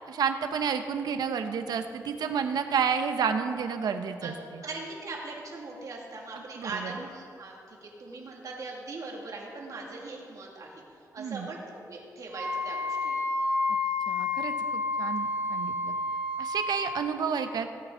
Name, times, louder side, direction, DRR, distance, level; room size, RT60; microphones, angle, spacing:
voice 1, 0.0-4.6 6.3-6.9 11.2-11.5 14.1-15.9 16.4-17.8, right 6 dB, 85° right, 7 dB, 0.8 m, -30 dB
voice 2, 4.6-10.8 11.1-13.2, right 3 dB, 55° right, -1 dB, 2.2 m, -40 dB
Wind instrument woodwind instrument, 12.3-16.9, left 2 dB, 30° right, 2.6 m, -30 dB
17.0 x 8.7 x 3.8 m, 2.4 s
wide cardioid pair, 110°, 7 cm